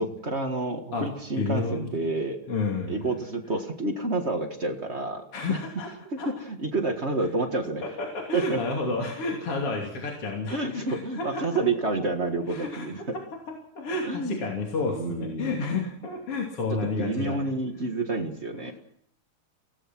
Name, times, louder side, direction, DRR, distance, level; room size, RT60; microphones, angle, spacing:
voice 1, 0.0-2.4 2.9-5.6 6.1-7.8 8.3-8.6 10.5-13.0 14.0-14.5 14.9-15.8 16.8-18.7, right 2 dB, 40° right, 4 dB, 0.9 m, -29 dB
voice 2, 1.4-2.0 2.5-3.0 5.3-5.9 6.2-6.3 8.0-11.4 12.5-13.0 13.8-17.5 18.6-18.7, left 3 dB, 45° left, 0 dB, 3.6 m, -30 dB
25.0 x 17.5 x 6.1 m, 0.73 s
omnidirectional pair, 3.9 m